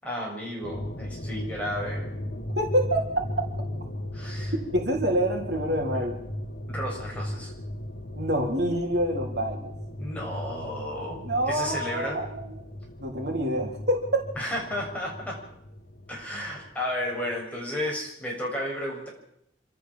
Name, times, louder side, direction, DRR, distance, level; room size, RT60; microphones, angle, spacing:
voice 1, 0.0-2.1 4.1-4.5 6.7-7.5 10.0-11.2 11.5-12.2 14.4-15.4 16.1-19.1, left 1 dB, 10° left, -3 dB, 7.6 m, -33 dB
sound 1, 0.6-17.3, left 1 dB, 60° left, 1.7 m, -37 dB
voice 2, 2.6-3.2 4.7-6.2 8.1-9.7 11.2-12.6 13.0-14.3, right 1 dB, 60° right, 1 dB, 3.8 m, -26 dB
27.0 x 13.5 x 7.6 m, 0.75 s
head